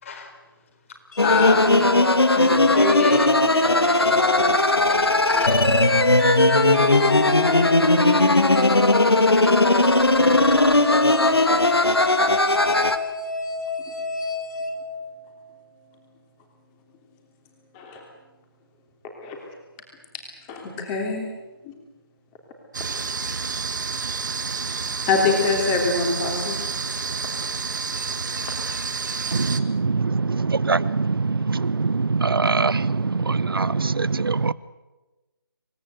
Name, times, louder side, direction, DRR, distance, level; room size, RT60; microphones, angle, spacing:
voice 1, 0.0-0.3 1.1-1.9 2.3-5.6 9.0-9.5, left 4 dB, 35° left, 5 dB, 4.2 m, -28 dB
sound 1, 1.1-15.5, left 4 dB, 50° left, 4.1 m, -30 dB
sound 2, 1.2-13.0, left 2 dB, 85° left, 2.0 m, -18 dB
voice 2, 20.5-21.3 21.6-21.7 25.1-26.6, left 4 dB, 15° left, 2 dB, 3.3 m, -25 dB
sound 3, 22.7-29.6, right 5 dB, 50° right, 1.7 m, -29 dB
voice 3, 29.3-34.5, right 4 dB, 65° right, 18 dB, 0.9 m, -23 dB
27.0 x 18.0 x 8.1 m, 1.1 s
figure-of-eight pair, 155°, 13 cm